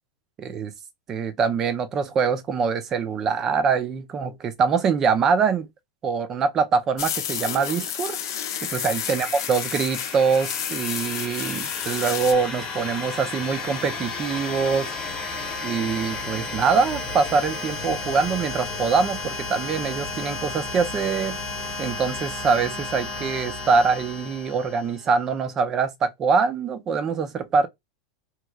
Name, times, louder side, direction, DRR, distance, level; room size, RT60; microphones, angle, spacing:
voice 1, 0.4-0.7 1.1-5.7 6.0-8.2 8.6-14.9 15.6-21.4 21.8-27.7, right 5 dB, 20° right, 0.4 m, -24 dB
sound 1, 7.0-12.3, left 9 dB, 85° left, 0.6 m, -31 dB
sound 2, 7.5-25.1, left 3 dB, 20° left, 0.9 m, -33 dB
2.9 x 2.3 x 3.4 m
supercardioid pair, 170°, 2 cm